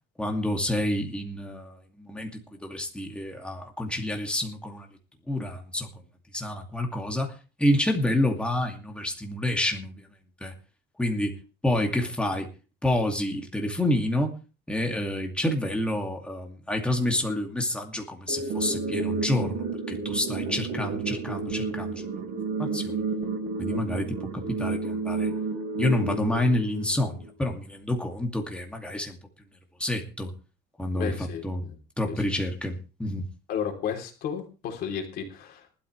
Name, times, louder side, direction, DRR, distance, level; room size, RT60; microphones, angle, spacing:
voice 1, 0.2-4.9 5.3-5.9 6.3-7.3 7.6-10.1 10.4-10.5 11.0-11.4 11.6-12.5 12.8-14.3 14.7-22.1 22.6-23.0 23.6-25.3 25.8-29.2 29.8-30.3 30.8-31.6 32.0-33.3, left 1 dB, 5° left, 2 dB, 2.4 m, -28 dB
sound 1, 18.3-27.3, right 4 dB, 80° right, 3.6 m, -31 dB
voice 2, 30.9-31.8 33.5-35.8, left 7 dB, 55° left, 2 dB, 3.5 m, -33 dB
19.0 x 12.5 x 3.3 m, 0.33 s
cardioid pair, 150°, 18 cm